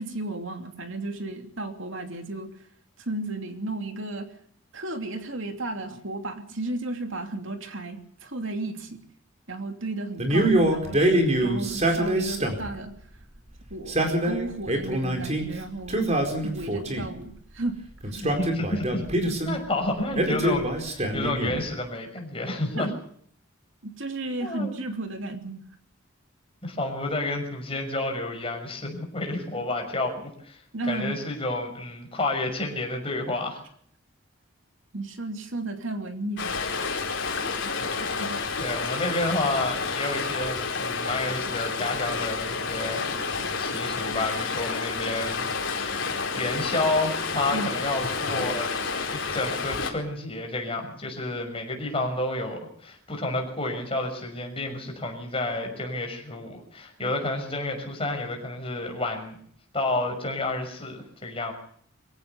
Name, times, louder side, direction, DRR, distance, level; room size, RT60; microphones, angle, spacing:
voice 1, 0.0-2.5 3.0-4.3 4.7-9.0 9.5-12.9 13.7-16.1 16.4-17.8 18.0-18.1 22.7-22.9 23.8-25.6 30.7-31.1 34.9-36.7 38.2-38.4 47.5-47.7 57.0-57.1, right 2 dB, 65° right, 5 dB, 2.9 m, -34 dB
Male speech man speaking, 10.2-12.8 13.7-15.5 15.9-17.2 18.0-19.6 20.2-21.7, right 1 dB, 30° right, 4.5 m, -25 dB
voice 2, 18.2-19.1 19.5-20.7 20.9-22.9 24.4-24.7 26.6-33.6 38.6-48.7 49.1-59.3 59.7-61.5, left 2 dB, 25° left, 3 dB, 6.2 m, -30 dB
Stream, 36.4-49.9, left 4 dB, 55° left, 4.9 m, -30 dB
25.0 x 16.0 x 6.9 m, 0.62 s
head